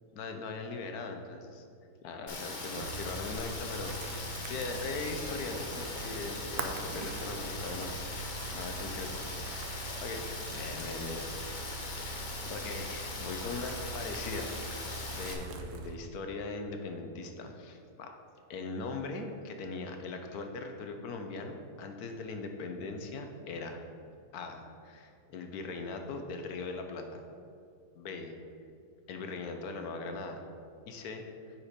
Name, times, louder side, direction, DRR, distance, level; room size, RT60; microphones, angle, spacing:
voice 1, 0.1-1.6 2.0-9.3 9.5-10.3 10.5-12.1 12.5-14.8 15.1-18.1 18.5-23.8 24.3-27.2 27.9-28.3 29.1-30.4 30.9-31.2, left 3 dB, 65° left, 5 dB, 1.3 m, -40 dB
Rain, 2.3-15.3, left 3 dB, 35° left, 0.8 m, -40 dB
sound 1, 2.8-16.0, right 3 dB, 75° right, 1.1 m, -42 dB
9.6 x 4.5 x 5.1 m, 2.4 s
omnidirectional pair, 1.8 m